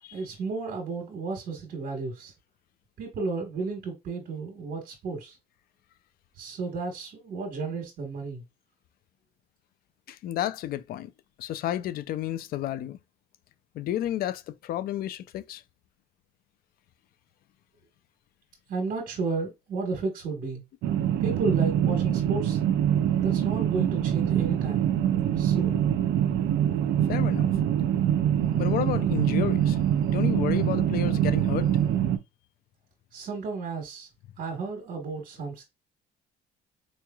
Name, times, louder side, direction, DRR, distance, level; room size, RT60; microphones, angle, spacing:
voice 1, 0.1-2.3 3.0-5.3 6.4-8.4 18.7-20.6 21.2-22.6 23.2-24.9 25.4-25.8 33.1-34.1 34.4-35.6, right 4 dB, 60° right, 1.3 m, -32 dB
voice 2, 10.1-11.1 11.4-13.0 13.7-15.6 27.1-27.5 28.5-29.8 30.1-31.7, left 12 dB, 60° left, 0.4 m, -31 dB
sound 1, 20.8-32.2, right 10 dB, 80° right, 0.5 m, -24 dB
4.2 x 3.1 x 2.3 m
cardioid pair, 110°, 17 cm